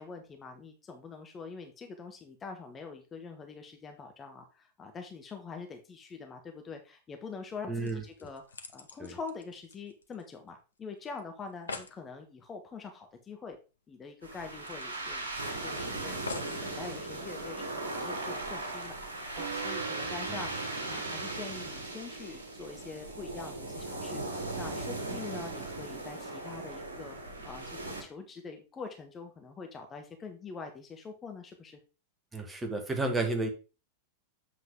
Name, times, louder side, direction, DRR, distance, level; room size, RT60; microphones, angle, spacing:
voice 1, 0.0-13.6 13.9-31.8, left 4 dB, 20° left, 5 dB, 1.2 m, -44 dB
sound 1, 7.5-7.6 7.8-10.5 10.8-10.9 11.2-11.3 11.5-12.0 13.5-13.6 13.9-14.0 14.6-15.7 16.3-16.7 17.4-17.5, left 4 dB, 75° left, 0.8 m, -44 dB
voice 2, 7.7-8.0 9.0-9.2 20.3-20.4 32.3-33.5, right 2 dB, 10° right, 4 dB, 1.6 m, -32 dB
sound 2, 14.2-28.0, right 2 dB, 75° right, 2.3 m, -38 dB
Guitar, 19.4-24.2, right 8 dB, 55° right, 0.6 m, -45 dB
7.9 x 5.7 x 3.7 m, 0.32 s
figure-of-eight pair, 90°, 0 cm